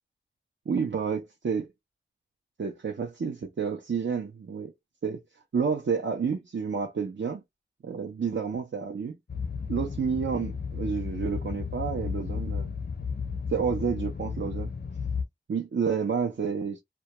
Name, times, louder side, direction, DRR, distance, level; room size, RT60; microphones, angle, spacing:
voice 1, 0.7-1.7 2.6-4.7 5.0-5.2 5.5-7.4 7.8-9.1 9.7-12.7 13.5-14.7 15.5-16.8, right 6 dB, 75° right, 0.5 m, -30 dB
sound 1, 9.3-15.2, left 5 dB, 55° left, 0.5 m, -33 dB
2.2 x 2.2 x 2.8 m
wide cardioid pair, 60°, 19 cm